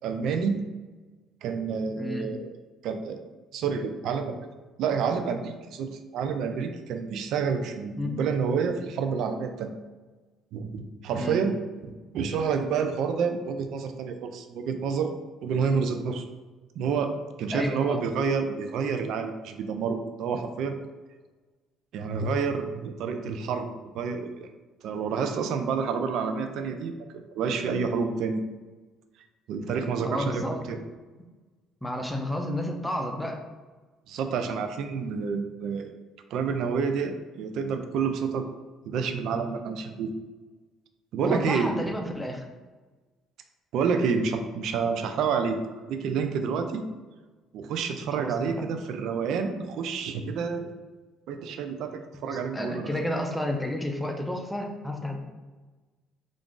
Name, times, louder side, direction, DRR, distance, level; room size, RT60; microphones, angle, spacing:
voice 1, 0.0-0.6 1.4-2.6 2.8-3.2 3.5-4.5 4.8-9.7 10.5-11.5 11.8-15.1 15.4-16.2 16.8-17.1 17.4-20.8 21.9-23.7 23.9-24.5 24.8-27.0 27.3-28.5 29.5-30.8 34.1-35.9 36.3-38.5 38.9-40.1 41.1-41.7 43.7-46.8 47.5-50.7 51.3-52.9, right 5 dB, 70° right, 7 dB, 0.3 m, -29 dB
voice 2, 2.0-2.3 8.0-8.2 11.1-11.4 17.5-18.0 30.0-30.6 31.8-33.4 41.2-42.4 48.1-48.3 52.3-55.2, left 1 dB, 10° left, 3 dB, 0.5 m, -31 dB
2.4 x 2.3 x 3.7 m, 1.3 s
supercardioid pair, 85°, 0 cm